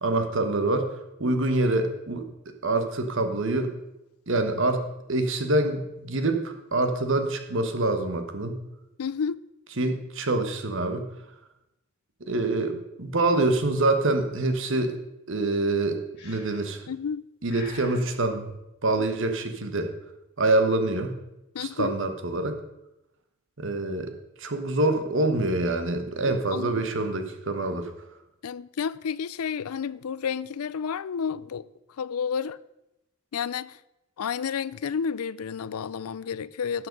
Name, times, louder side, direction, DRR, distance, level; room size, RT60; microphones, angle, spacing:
voice 1, 0.0-0.9 1.2-2.3 2.6-3.7 4.3-4.8 5.1-8.6 9.8-11.1 12.3-15.0 15.3-16.8 17.4-18.5 18.8-19.9 20.4-21.1 21.6-22.6 23.6-24.1 24.4-27.9, right 2 dB, 60° right, 1.2 m, -25 dB
voice 2, 9.0-9.4 16.9-17.2 21.5-21.9 26.2-26.7 28.4-31.7 32.0-32.6 33.3-33.8 34.2-36.9, left 6 dB, 85° left, 0.4 m, -31 dB
Breathing, 16.2-16.8 17.5-18.1, left 3 dB, 50° left, 4.5 m, -45 dB
12.5 x 7.8 x 5.3 m
head